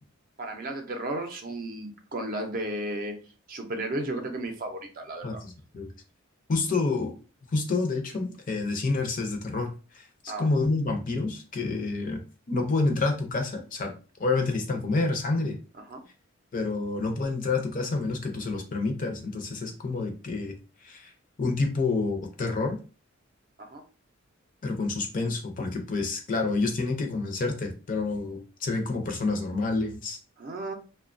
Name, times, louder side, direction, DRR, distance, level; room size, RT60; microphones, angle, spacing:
voice 1, 0.4-3.1 3.5-5.4 10.3-10.5 15.9-16.0 23.6-23.8 30.4-30.7, right 1 dB, 40° right, 4 dB, 0.5 m, -34 dB
voice 2, 5.2-5.9 6.5-7.2 7.5-12.2 12.5-13.9 14.2-15.6 16.5-20.5 20.8-21.1 21.4-22.8 24.6-30.2, left 3 dB, 40° left, 4 dB, 0.5 m, -28 dB
2.7 x 2.1 x 2.5 m, 0.34 s
head